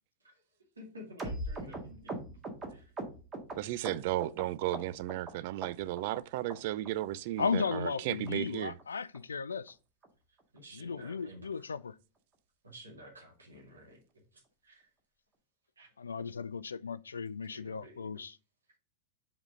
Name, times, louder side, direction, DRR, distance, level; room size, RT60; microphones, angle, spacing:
voice 1, 0.8-2.2 2.7-2.9 10.5-11.7 12.6-14.9 15.8-15.9 17.4-18.2, equal, 75° right, 2.2 m, -52 dB
sound 1, 1.2-4.4 4.7-5.3 5.6-6.2 6.5-6.6 6.8-7.1 7.4-7.5 7.7-7.9 8.3-8.4 8.6-8.8 9.1-9.2 9.5-9.7 10.0-10.1 10.4-10.6 10.9-11.0, right 2 dB, 20° right, 1.8 m, -40 dB
voice 2, 3.6-8.7, right 15 dB, 50° right, 0.4 m, -34 dB
voice 3, 7.4-9.8 10.7-11.9 16.0-18.4, left 5 dB, 75° left, 0.3 m, -35 dB
5.4 x 4.8 x 4.9 m
figure-of-eight pair, 90°, 0 cm